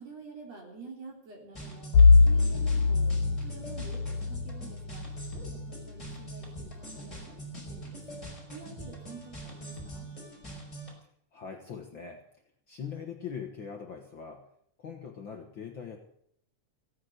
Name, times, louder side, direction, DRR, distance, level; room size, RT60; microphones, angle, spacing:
voice 1, 0.0-8.0 8.5-10.1, right 4 dB, 55° right, 0 dB, 4.7 m, -48 dB
sound 1, 1.6-10.9, right 1 dB, 10° left, 5.1 m, -43 dB
Bowed string instrument, 1.9-7.0, left 4 dB, 75° left, 3.5 m, -24 dB
voice 2, 11.3-12.2 12.7-14.5 14.8-16.0, left 7 dB, 50° left, 2 dB, 1.7 m, -41 dB
16.0 x 9.0 x 8.1 m, 0.67 s
omnidirectional pair, 3.5 m